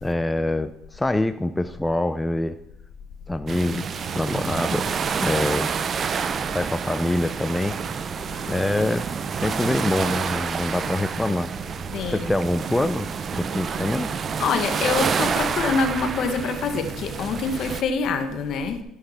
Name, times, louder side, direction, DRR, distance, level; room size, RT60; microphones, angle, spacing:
voice 1, 0.0-2.5 3.3-4.9 5.2-5.7 6.5-7.8 8.5-11.5 12.1-13.1 13.3-14.1, left 1 dB, 10° left, 10 dB, 0.5 m, -25 dB
sound 1, 3.5-17.8, right 6 dB, 45° right, 0.6 m, -28 dB
voice 2, 11.9-12.3 14.4-18.8, left 5 dB, 60° left, 8 dB, 1.5 m, -25 dB
13.5 x 5.8 x 5.7 m, 0.82 s
supercardioid pair, 90°, 0 cm